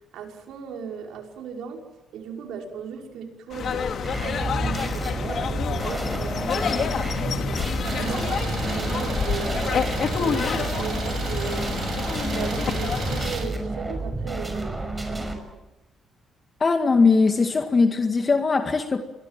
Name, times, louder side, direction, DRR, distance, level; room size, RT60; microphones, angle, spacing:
voice 1, 0.1-1.8 2.1-3.9 4.2-11.7 12.2-15.5, right 6 dB, 85° right, 2 dB, 5.6 m, -37 dB
sound 1, 3.5-13.4, left 7 dB, 60° left, 2.8 m, -28 dB
sound 2, 4.0-15.3, right 2 dB, 15° right, 6.2 m, -30 dB
Idling, 7.8-13.4, right 5 dB, 60° right, 6.3 m, -34 dB
voice 2, 16.6-19.0, left 4 dB, 35° left, 6 dB, 2.1 m, -20 dB
28.5 x 22.5 x 7.6 m, 1.0 s
cardioid pair, 90°, 0 cm